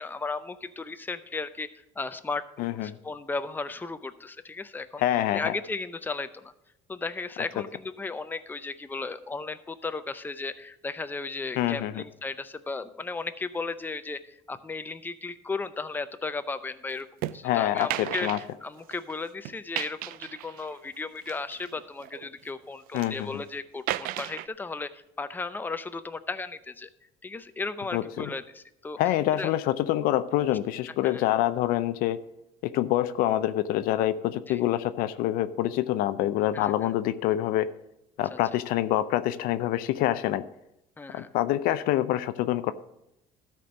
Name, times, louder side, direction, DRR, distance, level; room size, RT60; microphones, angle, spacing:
voice 1, 0.0-1.7 2.0-5.0 5.3-6.5 6.9-17.1 17.3-26.9 27.2-29.0 29.4-29.5 31.0-31.2 34.5-34.6 36.5-36.9 38.3-38.4 41.0-41.3, left 3 dB, 10° left, 11 dB, 0.6 m, -35 dB
voice 2, 2.6-2.9 5.0-5.5 11.6-12.0 17.4-18.4 22.9-23.4 27.9-28.3 29.0-32.2 32.6-37.7 38.2-40.4 41.1-42.7, left 13 dB, 75° left, 13 dB, 0.6 m, -26 dB
sound 1, 17.2-17.4 17.8-19.1 19.4-20.8 21.2-22.3 22.7-23.1 23.9-24.5, right 14 dB, 70° right, 0.4 m, -34 dB
12.5 x 4.5 x 6.3 m, 0.86 s
supercardioid pair, 95°, 15 cm